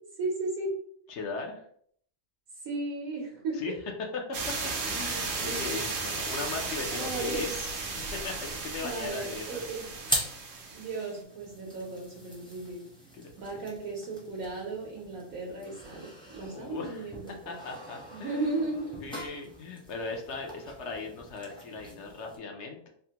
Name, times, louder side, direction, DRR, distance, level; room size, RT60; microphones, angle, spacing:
voice 1, 0.2-0.7 2.6-3.6 5.5-5.8 6.9-7.7 8.8-9.9 10.7-12.8 13.4-17.6 18.1-19.0, right 3 dB, 85° right, -2 dB, 1.2 m, -35 dB
voice 2, 1.1-1.7 3.5-3.7 4.1-4.6 4.9-7.5 7.9-9.6 12.4-12.6 13.1-13.5 16.4-17.1 17.5-18.7 19.0-22.9, left 4 dB, 65° left, 2 dB, 0.8 m, -38 dB
sound 1, 4.3-11.1, right 4 dB, 70° right, 1.0 m, -35 dB
sound 2, 9.6-22.4, right 1 dB, 5° left, 0.5 m, -41 dB
3.4 x 2.1 x 2.7 m, 0.63 s
omnidirectional pair, 1.4 m